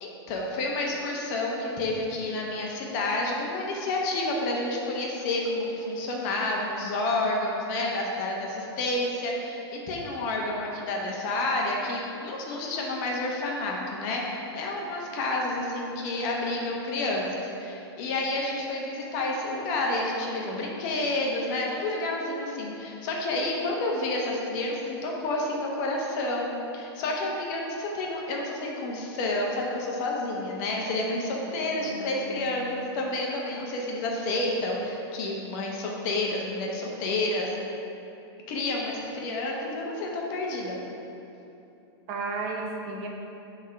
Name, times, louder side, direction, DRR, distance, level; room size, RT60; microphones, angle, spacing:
voice 1, 0.0-37.5 38.5-40.8, left 2 dB, 45° left, -1 dB, 1.0 m, -29 dB
voice 2, 31.8-32.7 42.1-43.1, right 3 dB, 40° right, 0 dB, 0.8 m, -34 dB
5.3 x 3.6 x 5.7 m, 2.8 s
hypercardioid pair, 145°, 14 cm